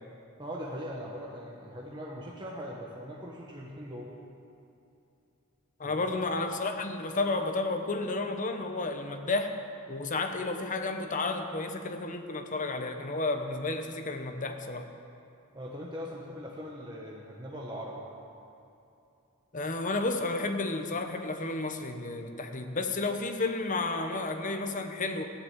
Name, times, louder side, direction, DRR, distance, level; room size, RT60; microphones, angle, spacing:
voice 1, 0.4-4.1 5.8-6.2 15.5-18.0, equal, 20° right, -3 dB, 1.3 m, -40 dB
voice 2, 5.8-9.6 9.9-14.9 19.5-25.2, left 3 dB, 35° left, 6 dB, 1.0 m, -32 dB
14.5 x 10.5 x 7.5 m, 2.7 s
head